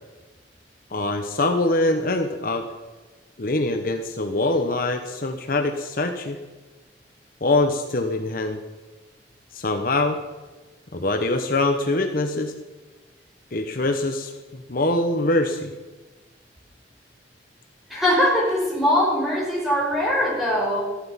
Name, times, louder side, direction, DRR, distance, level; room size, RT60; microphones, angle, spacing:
voice 1, 0.9-2.7 3.4-6.4 7.4-8.6 9.5-10.2 10.9-12.5 13.5-15.7, left 2 dB, 50° left, 6 dB, 1.0 m, -23 dB
voice 2, 17.9-20.8, left 1 dB, ahead, -3 dB, 4.8 m, -21 dB
14.5 x 11.5 x 5.7 m, 1.2 s
head